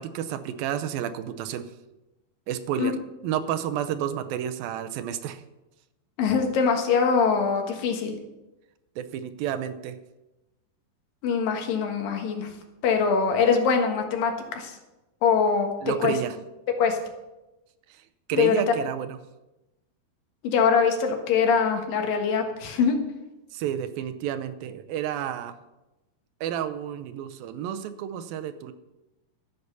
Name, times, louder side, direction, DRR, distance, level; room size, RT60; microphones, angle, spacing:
voice 1, 0.0-1.7 2.5-3.0 3.2-5.4 9.0-10.0 15.8-16.4 17.9-18.0 18.3-19.2 23.5-25.5 26.4-28.7, right 10 dB, 80° right, 11 dB, 2.4 m, -30 dB
voice 2, 6.2-8.1 11.2-12.5 12.8-14.8 15.2-15.7 16.0-16.1 16.8-17.0 18.3-18.5 20.4-23.0, left 6 dB, 70° left, 4 dB, 3.1 m, -23 dB
13.5 x 8.3 x 6.8 m, 1.0 s
omnidirectional pair, 4.4 m